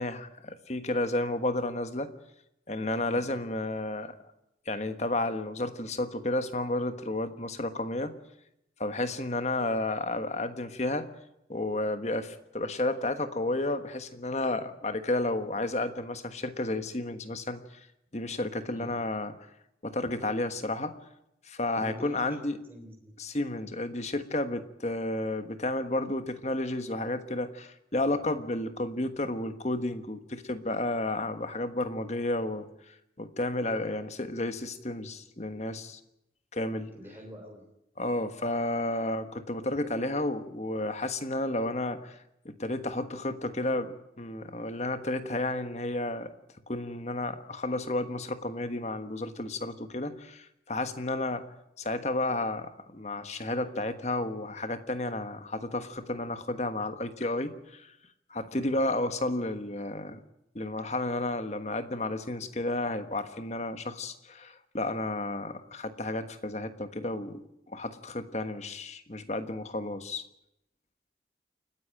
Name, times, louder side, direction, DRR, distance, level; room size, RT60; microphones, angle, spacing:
voice 1, 0.0-2.1 2.7-4.1 4.7-8.1 8.8-11.1 11.5-17.9 18.1-19.3 19.8-21.0 21.4-22.6 23.2-36.0 36.5-36.9 38.0-42.2 42.4-46.3 46.7-51.5 51.8-57.9 58.3-60.2 60.5-70.2, left 2 dB, 40° left, 9 dB, 1.4 m, -32 dB
voice 2, 21.8-22.4 22.7-23.2 36.9-37.6, equal, 10° right, 1 dB, 3.2 m, -46 dB
29.0 x 10.0 x 9.1 m, 0.83 s
head